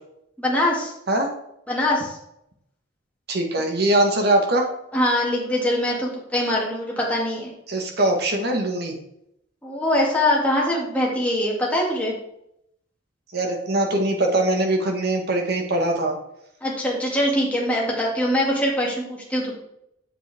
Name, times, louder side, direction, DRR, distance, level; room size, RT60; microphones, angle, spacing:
voice 1, 0.4-0.9 1.7-2.2 4.9-7.5 9.6-12.1 16.6-19.5, left 1 dB, 5° left, -4 dB, 2.1 m, -23 dB
voice 2, 3.3-4.6 7.7-9.0 13.3-16.2, right 1 dB, 55° right, 2 dB, 1.6 m, -22 dB
7.6 x 7.4 x 3.5 m, 0.77 s
head